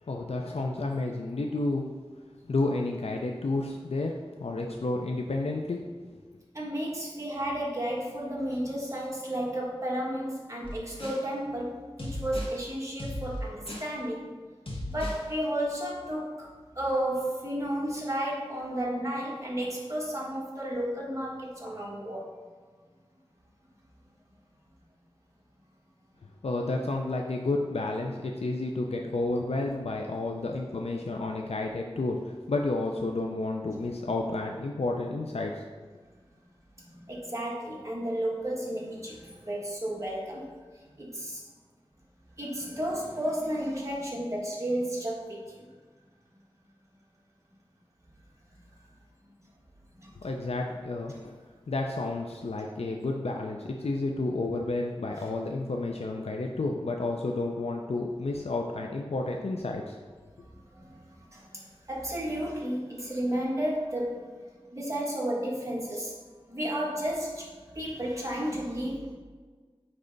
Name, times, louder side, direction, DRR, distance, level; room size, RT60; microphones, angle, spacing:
voice 1, 0.0-1.9 2.4-5.8 6.1-6.2 26.4-35.6 50.2-51.4 51.7-60.0, left 2 dB, 85° left, 1 dB, 0.5 m, -31 dB
voice 2, 6.5-14.3 14.9-22.3 33.7-33.8 36.9-40.5 41.0-41.4 42.4-45.6 50.0-50.1 60.7-64.4 64.7-66.2 66.5-69.1, right 1 dB, 30° right, -3 dB, 1.6 m, -32 dB
sound 1, 10.6-11.3 12.0-12.6 13.0-13.9 14.7-15.3, equal, 65° left, 1.2 m, -36 dB
8.9 x 3.3 x 3.9 m, 1.4 s
wide cardioid pair, 55°, 10 cm